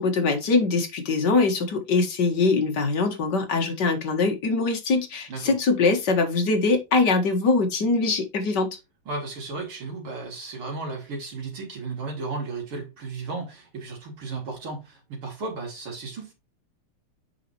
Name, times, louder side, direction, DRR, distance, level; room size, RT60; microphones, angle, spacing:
voice 1, 0.0-8.7, left 3 dB, 55° left, 2.1 m, -22 dB
voice 2, 9.1-16.3, right 3 dB, 75° right, 4.0 m, -34 dB
7.4 x 5.7 x 3.1 m
omnidirectional pair, 2.4 m